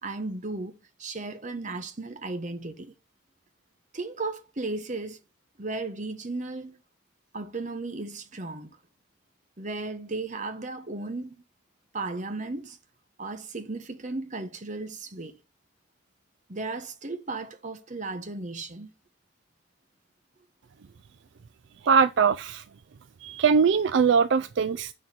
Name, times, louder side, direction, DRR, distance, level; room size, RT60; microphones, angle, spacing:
voice 1, 0.0-0.7 1.0-2.9 3.9-5.2 5.6-6.8 7.3-8.7 9.6-11.4 11.9-12.8 13.2-15.3 16.5-18.9, right 3 dB, 40° right, 1.1 m, -35 dB
voice 2, 21.8-22.6 23.2-24.9, right 6 dB, 60° right, 0.4 m, -21 dB
8.9 x 6.6 x 4.3 m
head